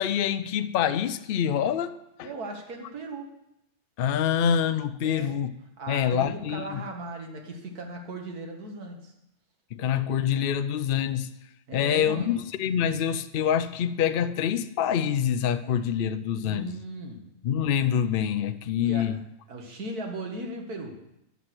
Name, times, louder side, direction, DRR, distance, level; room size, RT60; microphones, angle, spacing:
voice 1, 0.0-2.3 4.0-5.5 5.9-6.8 9.7-11.3 11.7-16.8 17.4-19.2, left 9 dB, 75° left, 9 dB, 0.5 m, -26 dB
voice 2, 2.2-3.3 5.0-5.4 5.8-9.1 11.7-12.4 16.4-17.3 18.8-19.1 19.5-21.0, right 2 dB, 90° right, 2 dB, 2.0 m, -37 dB
10.5 x 5.9 x 7.9 m, 0.85 s
omnidirectional pair, 1.6 m